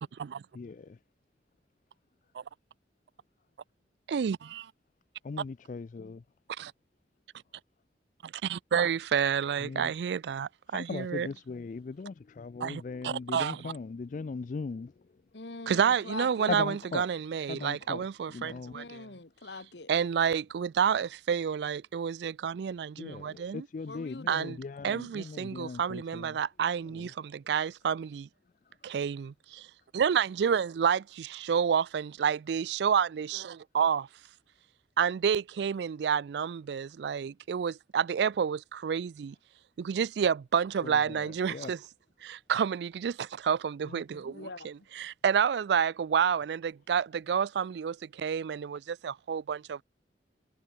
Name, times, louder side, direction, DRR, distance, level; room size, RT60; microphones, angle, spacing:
voice 1, 0.5-1.0 5.2-6.2 9.6-9.9 10.7-14.9 16.5-17.1 17.5-18.8 23.0-26.4 26.9-27.1 40.8-41.7 43.9-44.3, left 4 dB, 45° left, 0.4 m, -39 dB
voice 2, 4.1-4.7 6.6-6.7 8.2-11.3 12.6-13.7 15.7-19.0 19.9-23.7 24.3-24.6 24.8-28.3 28.8-29.7 29.9-34.1 35.0-39.4 39.8-41.8 42.2-49.8, right 7 dB, 70° right, 0.3 m, -29 dB
voice 3, 15.3-16.6 18.7-19.9 23.9-24.6 44.3-44.7, left 3 dB, 75° left, 1.7 m, -43 dB
head